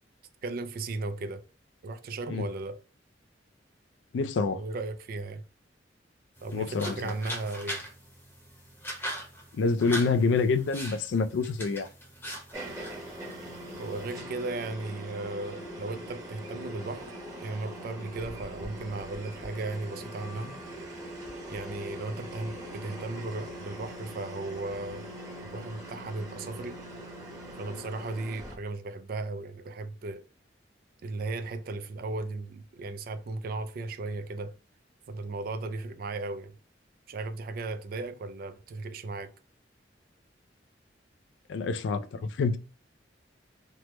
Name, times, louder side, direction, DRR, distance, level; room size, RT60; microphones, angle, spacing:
voice 1, 0.4-1.4 1.8-2.8 4.6-5.4 6.4-7.8 13.8-17.1 17.4-20.6 21.5-25.1 25.4-26.8 27.6-30.2 31.0-34.5 35.1-36.6 37.1-39.3, right 3 dB, 50° right, 0.4 m, -36 dB
voice 2, 4.1-4.6 6.5-7.1 9.5-11.9 41.5-42.6, left 4 dB, 75° left, 0.3 m, -27 dB
sound 1, 6.4-14.2, equal, 10° left, 0.8 m, -41 dB
sound 2, 12.5-28.6, equal, 20° right, 0.9 m, -42 dB
3.2 x 2.1 x 2.9 m
head